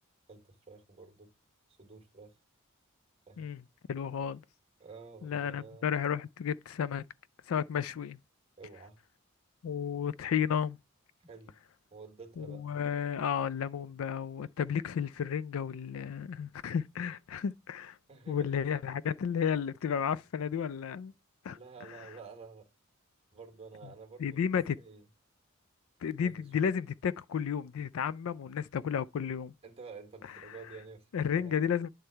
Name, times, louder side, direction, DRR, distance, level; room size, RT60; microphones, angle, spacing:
voice 1, 0.3-1.3 1.8-2.4 3.3-3.5 4.8-5.9 8.6-9.0 11.3-11.5 11.9-12.7 18.1-18.4 21.5-22.7 23.3-24.4 24.7-25.1 26.2-26.5 29.6-31.7, right 4 dB, 30° right, 1.4 m, -50 dB
voice 2, 3.9-4.4 5.2-7.0 7.5-8.2 9.6-10.8 12.4-18.0 18.3-21.1 21.4-21.6 24.2-24.8 26.0-29.5 31.1-31.9, left 7 dB, 70° left, 0.4 m, -32 dB
9.5 x 3.3 x 4.4 m
head